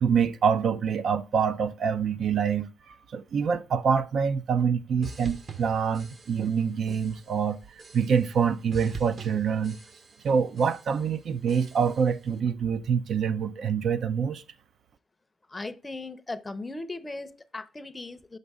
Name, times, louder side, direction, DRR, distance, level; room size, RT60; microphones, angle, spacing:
voice 1, 0.0-9.8 10.2-14.4, right 6 dB, 60° right, 0.5 m, -26 dB
sound 1, 5.0-6.6 6.9-7.4 7.8-8.4 8.7-10.3 10.6-11.1 11.5-12.1, right 5 dB, 40° right, 0.9 m, -44 dB
voice 2, 15.5-18.4, left 2 dB, 20° left, 0.6 m, -38 dB
6.4 x 5.4 x 3.5 m
cardioid pair, 90°, 0 cm